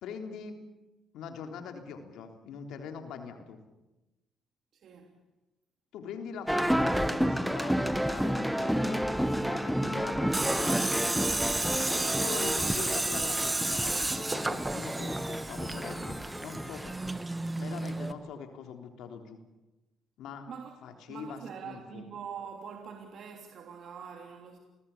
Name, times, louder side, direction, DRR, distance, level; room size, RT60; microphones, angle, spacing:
voice 1, 0.0-0.6 1.1-3.6 5.9-9.0 9.4-10.8 11.8-16.9 17.5-19.4 20.2-20.5 20.8-22.1, left 6 dB, 85° left, 5 dB, 3.4 m, -43 dB
voice 2, 4.7-5.2 11.9-12.4 20.5-20.7 21.1-24.6, right 7 dB, 65° right, 3 dB, 3.2 m, -44 dB
sound 1, 6.5-17.2, equal, ahead, 1.5 m, -31 dB
Tools, 10.3-18.1, right 2 dB, 15° right, 1.9 m, -32 dB
28.5 x 21.0 x 8.5 m, 1.0 s
cardioid pair, 90°, 0 cm